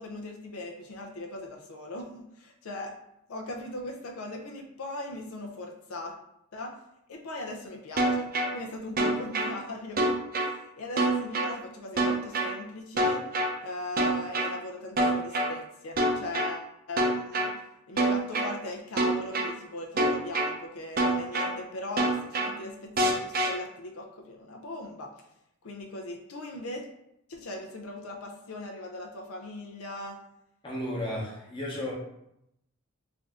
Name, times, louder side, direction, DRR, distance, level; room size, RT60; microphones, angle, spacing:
voice 1, 0.0-2.9 3.3-6.1 6.5-6.7 7.1-10.1 10.4-13.2 13.6-17.5 17.9-25.1 25.6-26.9 27.3-30.2, left 2 dB, 90° left, 1 dB, 0.6 m, -39 dB
sound 1, 8.0-8.5 9.0-9.5 10.0-10.5 11.0-11.5 12.0-12.5 13.0-13.5 14.0-14.5 15.0-15.5 16.0-16.5 17.0-17.5 18.0-18.5 19.0-19.5 20.0-20.5 21.0-21.5 22.0-22.5 23.0-23.5, right 1 dB, 45° right, 0.5 m, -25 dB
voice 2, 30.6-31.9, left 1 dB, 25° left, -4 dB, 0.9 m, -33 dB
3.4 x 2.6 x 3.5 m, 0.80 s
head